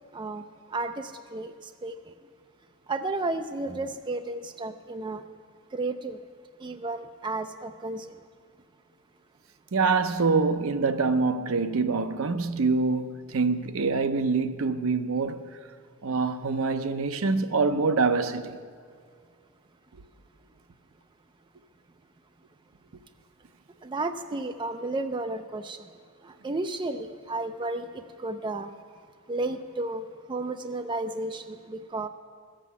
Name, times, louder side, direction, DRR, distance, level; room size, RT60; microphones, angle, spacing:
voice 1, 0.1-2.1 2.9-5.2 5.7-6.2 6.6-8.2 23.8-25.9 26.2-28.7 29.3-32.1, right 2 dB, 20° right, 0.4 m, -33 dB
voice 2, 9.7-15.5 16.0-18.6 19.9-20.0, right 4 dB, 65° right, 0.6 m, -25 dB
13.5 x 7.6 x 8.2 m
head